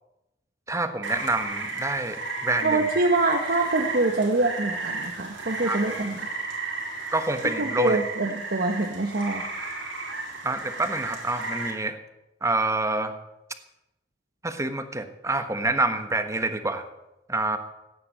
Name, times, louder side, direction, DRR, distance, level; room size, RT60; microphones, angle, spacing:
voice 1, 0.7-2.9 5.6-5.9 7.1-8.0 10.4-12.0 12.4-13.1 14.4-16.9 17.3-17.6, right 2 dB, 15° right, 9 dB, 1.3 m, -27 dB
Rain, 1.0-11.7, right 3 dB, 90° right, 3.9 m, -33 dB
voice 2, 2.6-6.2 7.6-9.4, right 2 dB, 55° right, 3 dB, 1.3 m, -25 dB
15.0 x 9.5 x 8.6 m, 0.94 s
head